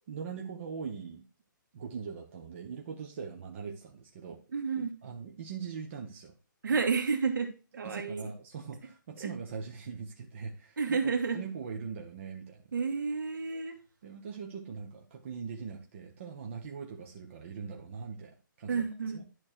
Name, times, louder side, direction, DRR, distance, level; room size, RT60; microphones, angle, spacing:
voice 1, 0.1-1.2 1.7-4.4 5.0-6.3 7.8-12.7 14.0-18.8 19.1-19.2, right 6 dB, 35° right, 1 dB, 1.2 m, -41 dB
voice 2, 4.5-4.9 6.6-7.5 7.8-8.3 9.2-9.3 10.8-11.4 12.7-13.8 18.7-19.2, right 5 dB, 70° right, 5 dB, 2.3 m, -30 dB
11.0 x 4.3 x 4.5 m, 0.33 s
hypercardioid pair, 170°, 11 cm